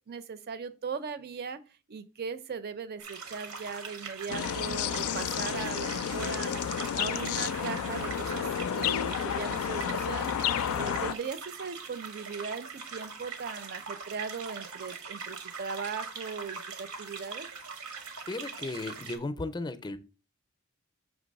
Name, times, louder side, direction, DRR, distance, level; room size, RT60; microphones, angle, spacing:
voice 1, 0.1-1.6 1.9-6.5 6.9-8.5 8.7-10.3 10.7-17.5, right 5 dB, 50° right, 0.5 m, -38 dB
sound 1, 3.0-19.2, right 5 dB, 85° right, 1.1 m, -42 dB
sound 2, 4.3-11.1, left 9 dB, 90° left, 0.3 m, -31 dB
voice 2, 18.3-20.0, left 2 dB, 20° left, 0.5 m, -35 dB
6.2 x 2.9 x 5.2 m
head